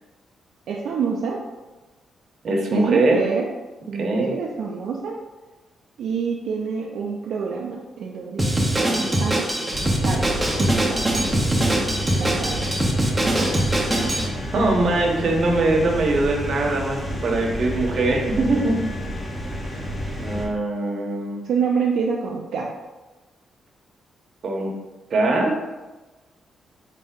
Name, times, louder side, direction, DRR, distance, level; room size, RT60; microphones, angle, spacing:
voice 1, 0.7-1.4 2.7-3.5 3.9-5.2 6.0-9.5 10.0-10.2 10.6-11.0 12.2-12.7 13.4-13.5 21.4-22.7, right 5 dB, 75° right, -2 dB, 0.4 m, -27 dB
voice 2, 2.4-3.2 4.0-4.3 14.5-18.8 20.2-21.4 24.4-24.7 25.1-25.6, right 2 dB, 55° right, 0 dB, 0.8 m, -21 dB
Drum kit, 8.4-14.3, right 1 dB, 15° right, 0.6 m, -22 dB
sound 1, 9.7-20.5, equal, 10° left, 0.9 m, -30 dB
4.0 x 2.7 x 3.6 m, 1.2 s
cardioid pair, 115°, 0 cm